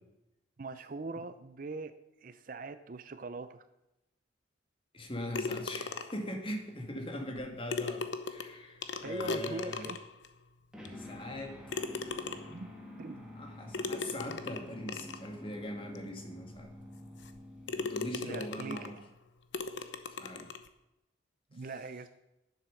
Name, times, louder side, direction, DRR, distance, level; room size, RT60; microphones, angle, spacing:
voice 1, 0.6-1.9 2.2-3.6 9.0-10.0 10.8-10.9 12.5-12.7 13.0-13.3 18.1-19.1 21.5-22.1, right 3 dB, 45° right, 11 dB, 0.5 m, -42 dB
voice 2, 4.9-9.9 11.0-11.5 13.4-16.7 17.8-19.0 20.2-20.5, left 1 dB, 25° left, 3 dB, 1.7 m, -41 dB
sound 1, 5.3-6.3 7.4-7.5 7.7-10.3 10.9-11.0 11.7-12.7 13.7-15.3 16.0-16.1 16.6-16.7 17.2-17.4 17.7-19.0 19.5-20.7, left 3 dB, 65° left, 0.8 m, -38 dB
sound 2, 10.7-19.0, left 1 dB, 5° right, 1.7 m, -49 dB
10.5 x 7.5 x 6.4 m, 0.92 s
head